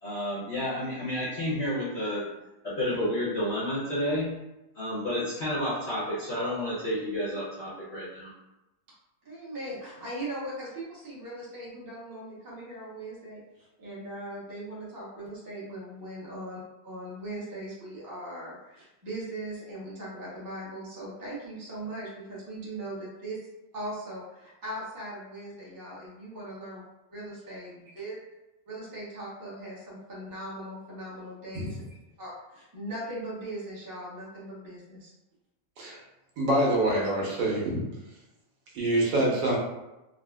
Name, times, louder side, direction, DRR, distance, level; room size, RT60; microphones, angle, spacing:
voice 1, 0.0-2.3 2.6-4.3 4.7-8.3, left 1 dB, 60° left, -9 dB, 0.7 m, -30 dB
voice 2, 9.2-23.4 23.7-26.8 27.1-28.1 28.7-31.8 32.2-35.1, right 1 dB, 25° right, -7 dB, 0.4 m, -39 dB
voice 3, 36.4-37.9 38.7-39.6, right 1 dB, 85° right, -3 dB, 1.5 m, -25 dB
3.7 x 2.0 x 2.2 m, 0.98 s
omnidirectional pair, 1.9 m